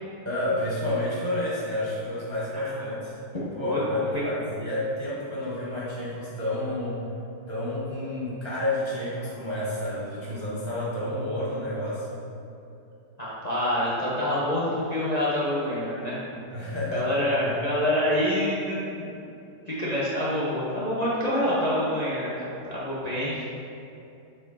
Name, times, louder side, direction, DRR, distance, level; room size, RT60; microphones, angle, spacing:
voice 1, 0.2-3.1 3.5-7.0 7.5-12.2 16.5-17.6, left 1 dB, 20° right, -8 dB, 1.0 m, -30 dB
voice 2, 2.5-2.9 3.6-3.8 4.1-4.2 13.2-16.2 16.9-19.1 19.7-23.4, left 1 dB, 25° left, -8 dB, 1.0 m, -27 dB
7.6 x 5.0 x 4.1 m, 2.7 s
omnidirectional pair, 2.0 m